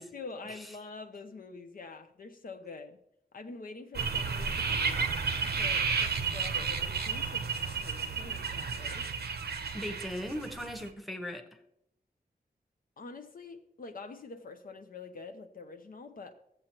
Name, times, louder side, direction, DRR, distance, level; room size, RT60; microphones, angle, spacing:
voice 1, 0.0-3.0 3.3-5.1 5.6-9.1 13.0-16.3, left 3 dB, 60° left, 6 dB, 0.6 m, -46 dB
sound 1, 3.9-10.9, right 5 dB, 85° right, 0.8 m, -32 dB
voice 2, 9.7-11.6, equal, ahead, 5 dB, 0.9 m, -38 dB
14.0 x 7.6 x 3.0 m, 0.78 s
wide cardioid pair, 105°, 16 cm